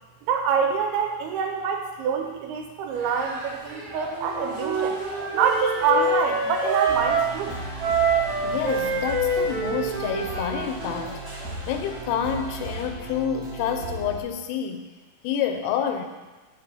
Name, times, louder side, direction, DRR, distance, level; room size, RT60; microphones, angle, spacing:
voice 1, 0.3-7.5, right 6 dB, 80° right, 4 dB, 2.7 m, -26 dB
sound 1, 2.9-12.9, equal, 30° right, 1.7 m, -41 dB
Wind instrument woodwind instrument, 4.1-7.3 7.8-11.1, right 3 dB, 65° right, 2.1 m, -26 dB
sound 2, 6.9-14.2, right 2 dB, 5° left, 0.8 m, -37 dB
voice 2, 8.4-11.2 11.7-14.9 15.2-16.0, left 8 dB, 85° left, 6 dB, 2.6 m, -28 dB
6.7 x 5.4 x 5.7 m, 1.2 s
omnidirectional pair, 4.6 m